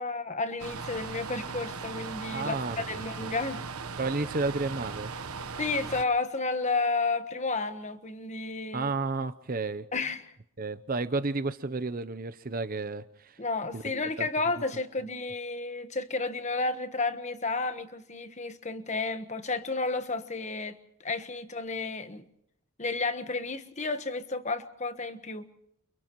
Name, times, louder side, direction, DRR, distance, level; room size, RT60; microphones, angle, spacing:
voice 1, 0.0-3.6 5.6-8.9 9.9-10.2 13.4-22.2 22.8-25.5, left 3 dB, 30° left, 1.3 m, -32 dB
sound 1, 0.6-6.0, right 5 dB, 80° right, 1.2 m, -38 dB
voice 2, 2.3-3.3 4.0-5.1 8.7-9.9 10.6-13.4 13.7-14.3, right 3 dB, 40° right, 0.7 m, -32 dB
30.0 x 29.0 x 3.1 m
head